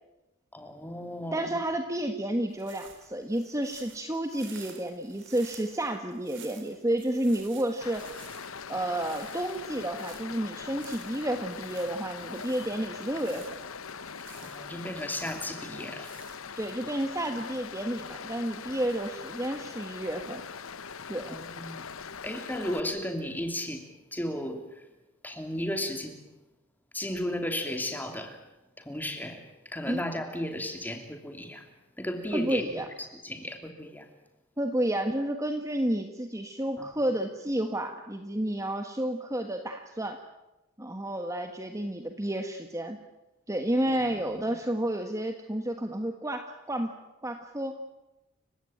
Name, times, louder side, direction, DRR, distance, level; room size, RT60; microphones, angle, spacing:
voice 1, 0.5-1.6 14.3-16.1 21.3-21.8 22.2-24.9 25.2-26.2 26.9-28.4 28.8-31.7 32.0-32.8 33.2-34.1 36.8-36.9 43.9-44.4, left 1 dB, 10° left, 6 dB, 3.0 m, -35 dB
voice 2, 1.3-8.1 8.7-13.4 16.6-20.4 21.1-21.3 29.9-30.0 32.3-32.9 34.6-40.2 40.8-43.0 43.5-46.9 47.2-47.7, right 1 dB, 15° right, 6 dB, 1.4 m, -31 dB
sound 1, 2.5-16.7, right 7 dB, 55° right, 3.9 m, -53 dB
Stream, 7.8-22.8, left 6 dB, 70° left, 1.0 m, -42 dB
29.5 x 16.5 x 9.2 m, 0.99 s
head